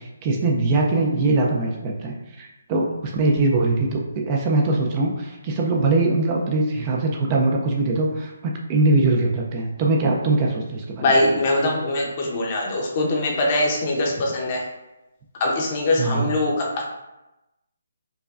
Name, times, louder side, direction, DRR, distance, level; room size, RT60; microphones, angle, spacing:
voice 1, 0.0-11.1 16.0-16.3, right 2 dB, 25° right, -1 dB, 0.4 m, -22 dB
voice 2, 11.0-14.7 15.4-16.8, left 2 dB, 30° left, -1 dB, 0.7 m, -22 dB
4.6 x 2.2 x 2.4 m, 0.97 s
hypercardioid pair, 165°, 0 cm